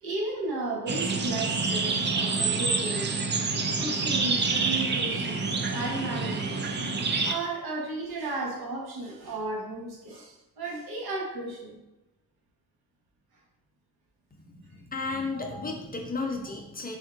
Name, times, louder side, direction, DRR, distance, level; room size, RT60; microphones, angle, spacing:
voice 1, 0.0-3.2 3.8-6.6 7.1-11.8 15.3-15.7, right 2 dB, 90° right, -2 dB, 1.0 m, -34 dB
sound 1, 0.9-7.3, right 4 dB, 30° right, 0.4 m, -27 dB
voice 2, 14.3-17.0, left 3 dB, 25° left, 1 dB, 0.5 m, -34 dB
3.5 x 2.6 x 3.7 m, 0.97 s
wide cardioid pair, 115°, 36 cm